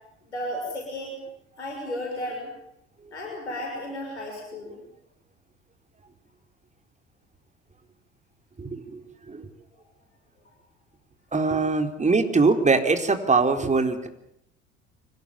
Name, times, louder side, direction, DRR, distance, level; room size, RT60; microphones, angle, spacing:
voice 1, 0.2-1.2 1.6-2.5 3.1-4.8, left 1 dB, 90° left, 0 dB, 6.5 m, -33 dB
voice 2, 8.6-9.0 9.3-9.5 11.3-14.1, right 4 dB, 20° right, 7 dB, 4.2 m, -22 dB
25.0 x 18.5 x 8.9 m, 0.78 s
figure-of-eight pair, 60°, 33 cm